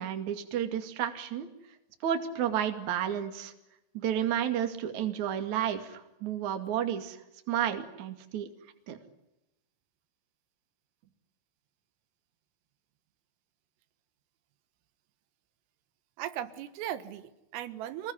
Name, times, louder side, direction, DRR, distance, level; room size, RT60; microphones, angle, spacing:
voice 1, 0.0-1.5 2.0-3.5 3.9-7.2 7.5-8.5 8.9-9.0, right 10 dB, 45° right, 6 dB, 2.9 m, -31 dB
voice 2, 16.2-18.1, right 12 dB, 85° right, 11 dB, 4.0 m, -37 dB
27.0 x 20.5 x 10.0 m, 0.95 s
omnidirectional pair, 5.8 m